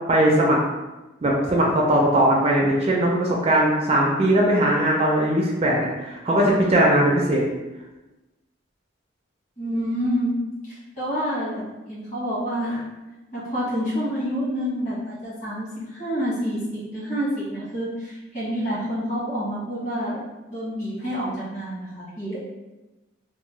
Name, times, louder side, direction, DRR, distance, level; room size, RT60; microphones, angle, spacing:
voice 1, 0.1-0.6 1.2-7.4, right 1 dB, 30° right, -2 dB, 0.4 m, -19 dB
voice 2, 9.6-10.3 10.6-11.6 11.9-12.9 13.3-20.2 20.5-22.4, equal, 40° left, -8 dB, 1.3 m, -28 dB
2.8 x 2.0 x 3.1 m, 1.1 s
head